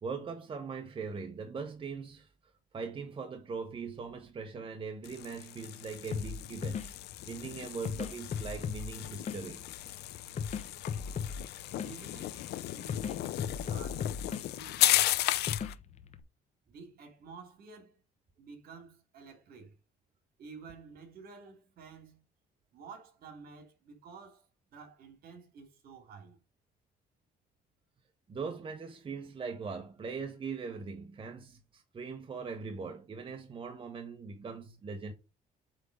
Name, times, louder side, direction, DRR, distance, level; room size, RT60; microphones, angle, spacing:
voice 1, 0.0-2.3 2.7-9.7 28.3-35.1, right 5 dB, 30° right, 1.1 m, -41 dB
sound 1, 5.0-15.7, left 15 dB, 75° left, 0.7 m, -35 dB
sound 2, 6.1-16.2, left 6 dB, 40° left, 1.0 m, -39 dB
voice 2, 11.7-13.3 13.7-15.2 16.7-18.0 18.4-19.8 20.4-22.2 22.7-26.4, right 5 dB, 65° right, 2.9 m, -51 dB
8.3 x 3.7 x 5.1 m
cardioid pair, 110°, 17 cm